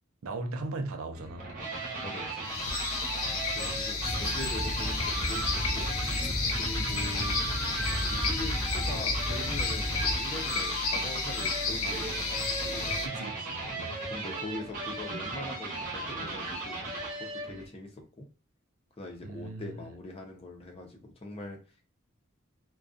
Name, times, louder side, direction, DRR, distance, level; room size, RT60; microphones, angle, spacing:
voice 1, 0.2-1.5 3.4-3.7 13.0-14.0 19.2-19.8, right 2 dB, 90° right, 0.5 m, -38 dB
sound 1, 1.1-17.7, right 2 dB, 40° right, 0.8 m, -37 dB
voice 2, 2.0-2.4 3.5-5.9 6.6-7.4 8.1-13.1 14.1-16.8 17.2-18.3 19.0-21.6, left 2 dB, 30° left, 0.5 m, -42 dB
sound 2, 2.4-13.1, left 4 dB, 90° left, 0.5 m, -32 dB
sound 3, 4.0-10.2, equal, 5° right, 0.7 m, -34 dB
2.4 x 2.2 x 2.5 m
head